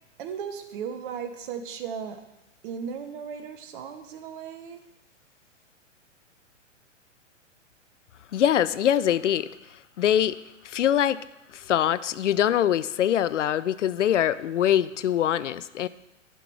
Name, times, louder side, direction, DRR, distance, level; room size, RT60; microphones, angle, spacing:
voice 1, 0.2-2.3 2.6-4.8, right 7 dB, 45° right, 8 dB, 1.0 m, -36 dB
voice 2, 8.3-9.5 10.0-10.4 10.6-11.2 11.5-15.9, left 10 dB, 70° left, 17 dB, 0.5 m, -23 dB
11.0 x 5.9 x 4.7 m, 0.93 s
figure-of-eight pair, 110°, 38 cm